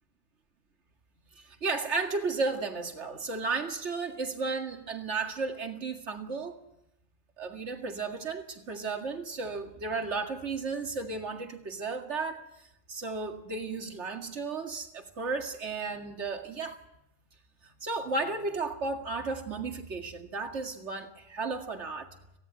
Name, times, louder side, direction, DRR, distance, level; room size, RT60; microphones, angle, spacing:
voice 1, 1.4-6.6 7.4-16.8 17.6-22.1, right 4 dB, 65° right, 4 dB, 2.4 m, -34 dB
18.0 x 17.0 x 9.6 m, 0.84 s
omnidirectional pair, 1.3 m